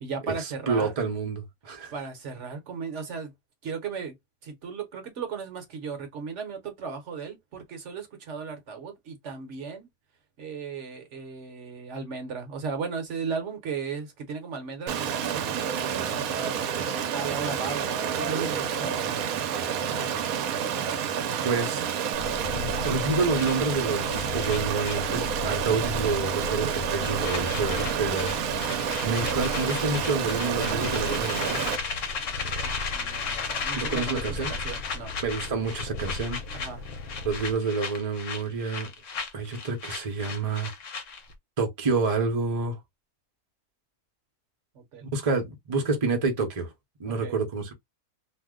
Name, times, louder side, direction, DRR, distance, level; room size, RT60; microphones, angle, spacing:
voice 1, 0.0-1.0 1.9-3.3 3.6-4.1 4.4-9.9 10.4-20.2 32.1-35.2 36.5-36.8 44.7-45.1 47.0-47.4, right 5 dB, 60° right, 1.0 m, -36 dB
voice 2, 0.7-1.9 21.4-21.8 22.5-28.3 29.0-31.6 33.7-34.5 35.2-36.4 37.2-38.9 39.3-40.7 41.6-42.8 45.0-46.7 47.0-47.7, right 4 dB, 35° right, 0.6 m, -28 dB
Stream, 14.9-31.8, right 8 dB, 80° right, 1.0 m, -29 dB
Purr, 22.1-37.5, left 2 dB, 90° left, 1.1 m, -38 dB
sound 1, 23.4-25.6 25.9-26.1 26.4-41.3, left 5 dB, 60° left, 1.1 m, -36 dB
2.7 x 2.1 x 3.5 m
omnidirectional pair, 1.5 m